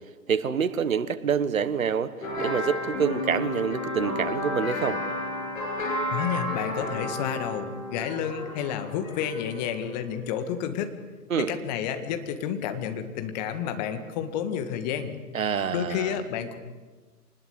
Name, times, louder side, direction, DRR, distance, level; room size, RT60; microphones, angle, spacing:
voice 1, 0.3-5.0 11.3-11.5 15.3-16.2, right 7 dB, 55° right, 14 dB, 1.6 m, -27 dB
sound 1, 2.2-9.9, left 1 dB, 55° left, 7.5 m, -32 dB
voice 2, 6.1-10.9 11.4-15.2 15.7-16.5, left 9 dB, 25° left, 8 dB, 1.9 m, -30 dB
26.0 x 20.0 x 8.2 m, 1.4 s
figure-of-eight pair, 130°, 48 cm